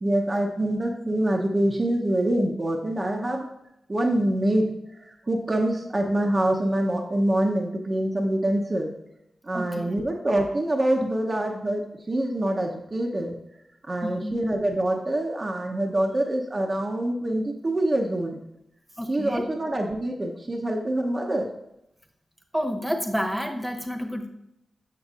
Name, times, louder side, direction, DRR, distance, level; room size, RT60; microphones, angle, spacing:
voice 1, 0.0-3.5 3.9-8.9 9.4-13.4 13.9-18.4 19.1-21.5, right 1 dB, 40° right, 1 dB, 0.7 m, -25 dB
voice 2, 9.5-10.0 14.0-14.4 19.0-19.4 22.5-24.3, equal, 10° right, 3 dB, 1.0 m, -29 dB
6.6 x 6.1 x 2.4 m, 0.84 s
cardioid pair, 45°, 0 cm